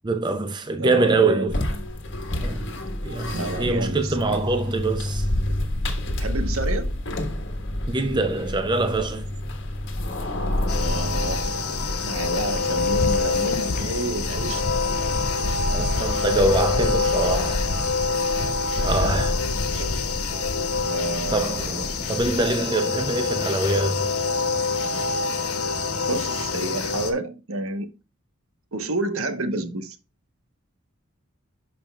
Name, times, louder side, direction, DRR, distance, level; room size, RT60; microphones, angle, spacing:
voice 1, 0.0-1.6 2.4-2.8 3.0-5.3 7.9-9.3 15.7-17.7 18.8-19.4 19.8-19.9 21.3-24.1, right 2 dB, 20° right, 0.5 m, -24 dB
voice 2, 0.8-1.5 3.3-4.5 6.2-7.0 10.8-11.5 12.0-15.1 18.8-19.2 19.7-19.9 20.8-21.8 26.1-27.9 28.7-30.0, right 2 dB, 70° right, 1.1 m, -30 dB
sound 1, 1.5-12.9, left 1 dB, 55° left, 1.4 m, -28 dB
sound 2, 10.7-27.1, left 4 dB, 90° left, 1.3 m, -26 dB
sound 3, 12.8-22.6, left 2 dB, 40° left, 0.5 m, -29 dB
11.5 x 5.2 x 2.3 m
head